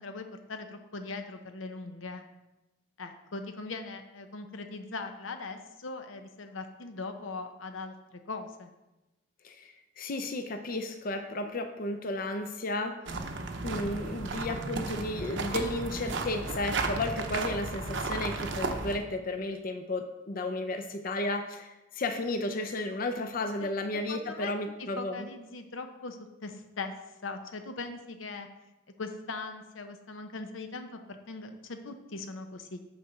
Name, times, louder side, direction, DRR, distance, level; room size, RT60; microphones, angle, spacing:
voice 1, 0.0-2.2 3.0-8.7 13.8-13.9 23.6-24.5 24.8-26.9 27.2-28.5 29.0-32.8, left 3 dB, 85° left, 6 dB, 0.8 m, -40 dB
voice 2, 9.4-13.0 13.6-25.2, left 2 dB, 45° left, 6 dB, 0.5 m, -33 dB
sound 1, 13.1-19.0, right 3 dB, 65° right, 0.7 m, -34 dB
6.5 x 4.5 x 6.7 m, 1.0 s
head